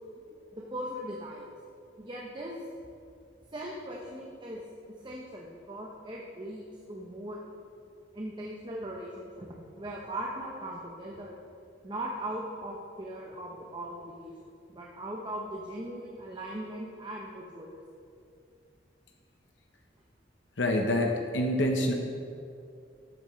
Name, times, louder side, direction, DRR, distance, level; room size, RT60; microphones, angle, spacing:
voice 1, 0.5-1.5 2.0-2.5 3.5-4.6 4.9-7.4 8.1-11.4 11.8-14.3 14.7-17.8, right 1 dB, 25° right, -2 dB, 0.8 m, -39 dB
voice 2, 20.6-21.9, left 1 dB, 80° left, 2 dB, 0.9 m, -26 dB
13.0 x 8.7 x 3.2 m, 2.5 s
head